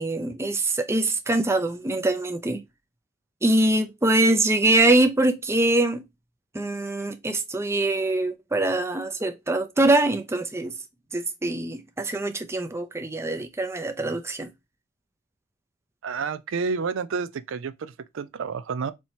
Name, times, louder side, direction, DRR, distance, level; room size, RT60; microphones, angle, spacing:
voice 1, 0.0-2.6 3.4-6.0 6.5-10.7 11.1-14.5, right 2 dB, 15° right, 0.5 m, -23 dB
voice 2, 16.0-18.9, right 5 dB, 65° right, 0.4 m, -30 dB
4.4 x 2.8 x 4.3 m
head